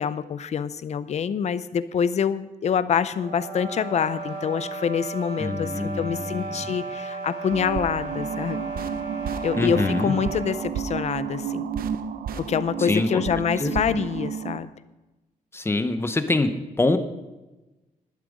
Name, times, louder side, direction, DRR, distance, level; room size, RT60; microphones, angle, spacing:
voice 1, 0.0-8.6 9.4-11.6 12.4-14.7, left 7 dB, 50° left, 15 dB, 0.6 m, -26 dB
sound 1, 3.1-10.6, right 3 dB, 50° right, 3.0 m, -34 dB
voice 2, 5.4-6.7 9.5-10.1 12.8-13.2 13.6-14.0 15.5-16.5 16.8-17.0, left 2 dB, 15° left, 9 dB, 0.8 m, -25 dB
sound 2, 7.5-14.6, right 7 dB, 80° right, 0.7 m, -31 dB
12.0 x 11.5 x 5.0 m, 1.1 s
wide cardioid pair, 170°, 15 cm